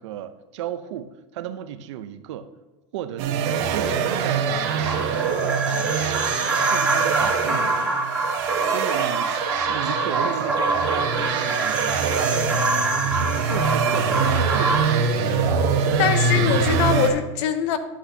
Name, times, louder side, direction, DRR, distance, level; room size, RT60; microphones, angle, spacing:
voice 1, 0.0-2.5 2.9-5.9 6.7-7.9 8.7-15.2 15.8-16.5, right 10 dB, 85° right, 12 dB, 0.6 m, -35 dB
sound 1, 3.2-17.1, right 5 dB, 65° right, 1.1 m, -24 dB
sound 2, 4.9-14.8, right 2 dB, 5° right, 1.4 m, -26 dB
Chirp tweet, 8.9-14.0, right 6 dB, 25° right, 1.0 m, -42 dB
voice 2, 16.0-17.8, left 7 dB, 70° left, 10 dB, 0.9 m, -23 dB
10.0 x 8.2 x 2.8 m, 1.2 s
supercardioid pair, 130°, 15 cm